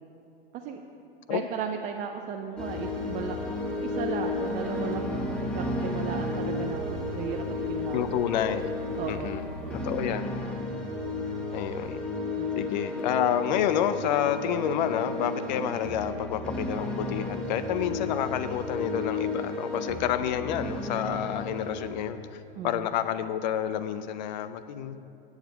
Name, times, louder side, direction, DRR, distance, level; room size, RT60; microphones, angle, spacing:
voice 1, 1.3-3.4 3.8-8.2 9.0-9.3 9.6-9.9 12.4-12.7 22.6-22.9, right 7 dB, 25° right, 4 dB, 0.4 m, -36 dB
sound 1, 2.6-21.9, left 2 dB, 5° left, 1.2 m, -33 dB
voice 2, 7.9-8.7 9.1-9.4 9.8-10.4 11.5-12.0 12.6-25.0, left 10 dB, 50° left, 12 dB, 0.4 m, -29 dB
8.9 x 7.1 x 5.4 m, 2.8 s
figure-of-eight pair, 95°, 30 cm